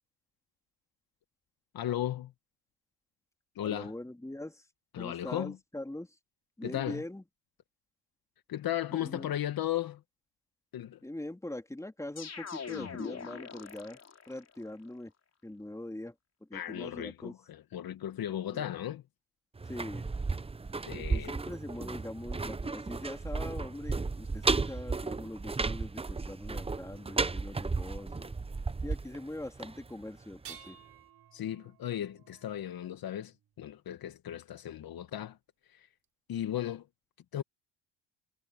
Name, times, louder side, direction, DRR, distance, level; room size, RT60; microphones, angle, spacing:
voice 1, 1.7-2.3 3.6-3.9 4.9-5.6 6.6-7.0 8.5-10.0 10.7-11.0 16.5-19.0 20.8-21.3 31.3-35.4 35.7-35.9 36.3-36.9 37.3-37.4, left 12 dB, 55° left, 1.8 m, -36 dB
voice 2, 3.6-4.7 5.0-6.2 6.6-7.2 8.9-9.3 11.0-14.0 14.3-15.1 15.4-16.1 16.4-17.3 18.5-18.6 19.6-20.1 20.9-28.3 28.8-30.8, left 1 dB, 5° left, 3.8 m, -42 dB
sound 1, 12.2-14.4, left 6 dB, 35° left, 3.7 m, -41 dB
sound 2, 19.6-30.4 30.7-30.8, right 3 dB, 15° right, 0.9 m, -34 dB
sound 3, 30.3-33.5 35.1-35.2 36.0-36.1, right 8 dB, 50° right, 4.5 m, -53 dB
supercardioid pair, 75°, 43 cm